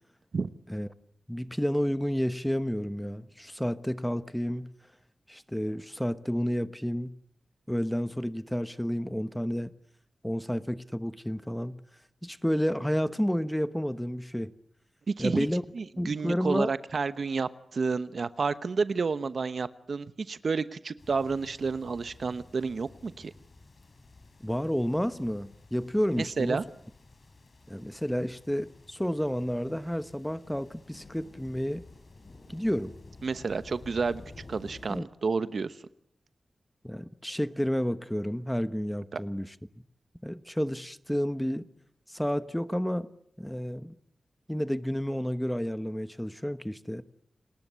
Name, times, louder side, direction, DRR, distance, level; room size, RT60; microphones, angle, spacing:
voice 1, 1.3-4.7 5.3-7.1 7.7-9.7 10.2-11.8 12.2-14.5 15.2-15.6 16.0-16.7 24.4-26.6 27.7-31.8 32.5-32.9 34.9-35.1 36.8-39.5 40.2-41.6 42.1-43.1 43.4-43.9 44.5-47.0, equal, 5° left, 1.1 m, -30 dB
voice 2, 15.1-15.5 15.7-23.3 26.2-26.6 33.2-34.2 34.5-35.8 39.1-39.2, right 4 dB, 70° right, 1.0 m, -30 dB
sound 1, 21.0-35.0, left 3 dB, 55° left, 4.7 m, -52 dB
29.5 x 20.0 x 8.2 m
wide cardioid pair, 80°, 0 cm